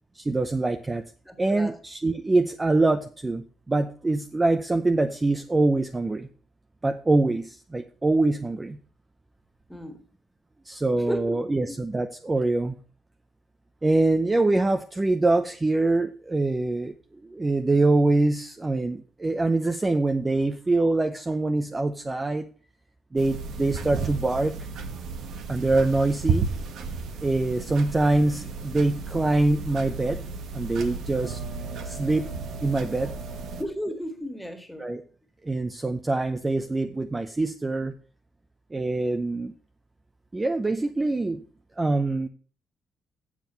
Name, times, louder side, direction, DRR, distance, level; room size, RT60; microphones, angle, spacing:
voice 1, 0.1-1.0 1.4-6.3 6.8-8.8 10.6-12.7 13.8-16.9 17.3-22.5 23.1-24.7 25.5-26.5 27.2-30.2 30.5-31.4 31.8-32.3 32.6-33.1 34.8-35.0 35.4-37.9 38.7-39.5 40.3-41.4 41.8-42.3, right 2 dB, 20° right, 0.7 m, -24 dB
voice 2, 1.3-1.8 9.7-10.0 11.1-11.8 33.6-34.9, equal, ahead, 2.0 m, -34 dB
sound 1, 23.2-33.6, right 5 dB, 75° right, 1.4 m, -33 dB
7.4 x 7.3 x 6.8 m
cardioid pair, 90°, 0 cm